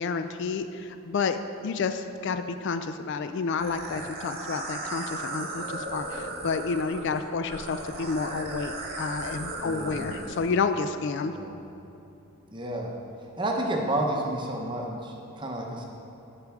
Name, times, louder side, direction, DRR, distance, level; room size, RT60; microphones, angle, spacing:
voice 1, 0.0-11.3, left 4 dB, 55° left, 9 dB, 0.3 m, -30 dB
sound 1, 3.6-10.5, right 2 dB, 45° right, 1.0 m, -36 dB
voice 2, 9.6-10.3 11.2-11.6 12.5-12.9 13.4-15.8, right 1 dB, 20° right, 0 dB, 0.8 m, -31 dB
12.0 x 5.2 x 3.5 m, 2.9 s
head